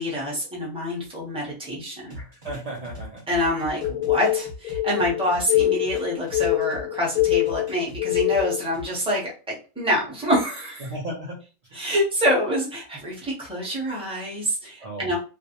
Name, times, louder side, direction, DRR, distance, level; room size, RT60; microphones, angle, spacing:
voice 1, 0.0-2.2 3.3-10.9 11.7-15.2, equal, 5° right, -4 dB, 0.6 m, -26 dB
sound 1, 2.1-6.8 7.1-8.9, left 1 dB, 30° right, 0.9 m, -40 dB
voice 2, 2.1-3.2 10.8-11.4 14.8-15.2, right 1 dB, 70° right, -5 dB, 0.3 m, -35 dB
sound 2, 3.8-8.6, left 15 dB, 90° left, 1.1 m, -24 dB
2.4 x 2.0 x 2.8 m, 0.34 s
omnidirectional pair, 1.5 m